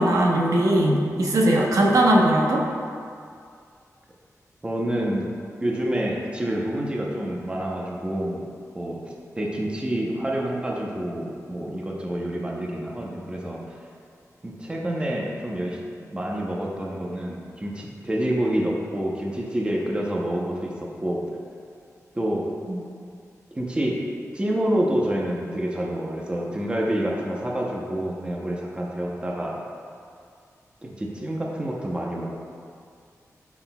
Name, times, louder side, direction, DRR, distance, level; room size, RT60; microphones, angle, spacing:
voice 1, 0.0-2.6 22.7-22.8, right 1 dB, 75° right, -1 dB, 1.0 m, -19 dB
voice 2, 4.6-5.3 5.6-8.5 8.7-13.8 14.4-15.8 16.1-20.7 21.0-21.2 22.1-22.5 23.5-24.0 24.3-29.6 30.8-32.5, right 1 dB, 20° right, -2 dB, 0.8 m, -28 dB
11.5 x 5.9 x 2.3 m, 2.3 s
wide cardioid pair, 155°, 6 cm